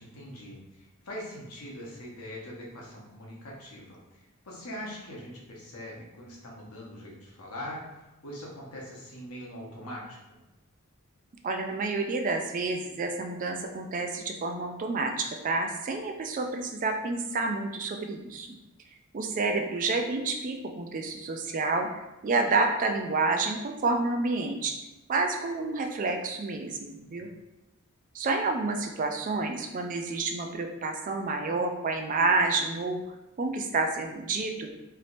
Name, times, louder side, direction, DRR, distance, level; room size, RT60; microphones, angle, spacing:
voice 1, 0.0-10.4, equal, 90° left, -3 dB, 0.9 m, -42 dB
voice 2, 11.4-18.5 19.1-21.9 22.2-24.7 25.1-27.3 28.1-33.0 33.4-34.7, right 3 dB, 35° right, 4 dB, 0.3 m, -29 dB
3.4 x 2.7 x 2.5 m, 1.0 s
head